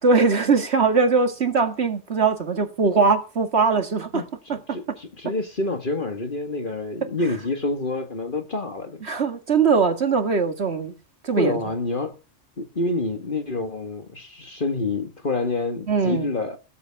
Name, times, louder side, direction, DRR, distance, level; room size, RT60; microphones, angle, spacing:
voice 1, 0.0-4.8 9.0-10.9 11.2-11.6 15.9-16.3, right 4 dB, 65° right, 2.2 m, -21 dB
voice 2, 4.7-9.0 11.4-12.2 12.6-16.6, left 2 dB, 45° left, 1.8 m, -27 dB
16.0 x 13.5 x 3.6 m
omnidirectional pair, 1.2 m